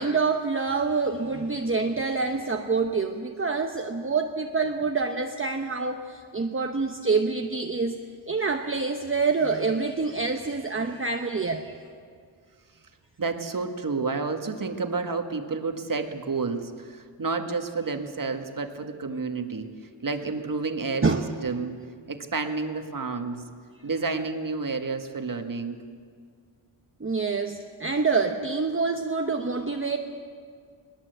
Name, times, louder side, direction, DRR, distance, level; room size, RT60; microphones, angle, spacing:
voice 1, 0.0-8.0 8.3-11.7 21.0-21.2 27.0-30.0, right 4 dB, 25° right, 4 dB, 0.9 m, -26 dB
voice 2, 13.2-19.7 20.0-21.1 21.4-21.8 22.1-23.5 23.8-25.8, right 4 dB, 40° right, 6 dB, 1.6 m, -30 dB
21.0 x 20.0 x 8.0 m, 2.1 s
wide cardioid pair, 125°, 49 cm